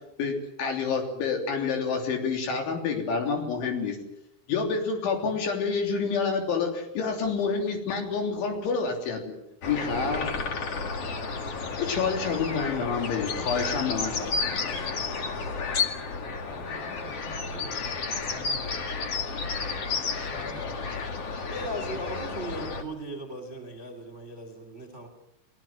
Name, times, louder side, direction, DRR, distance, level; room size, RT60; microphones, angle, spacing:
voice 1, 0.2-4.0 4.5-9.4 9.7-10.4 11.8-14.8, left 5 dB, 70° left, 3 dB, 5.7 m, -28 dB
sound 1, 9.6-22.8, left 4 dB, 45° left, 2.1 m, -32 dB
voice 2, 16.4-18.7 20.3-20.8, left 2 dB, 25° left, 3 dB, 7.5 m, -45 dB
voice 3, 21.4-25.1, right 1 dB, 20° right, 5 dB, 2.8 m, -37 dB
30.0 x 20.5 x 7.6 m, 0.79 s
omnidirectional pair, 5.6 m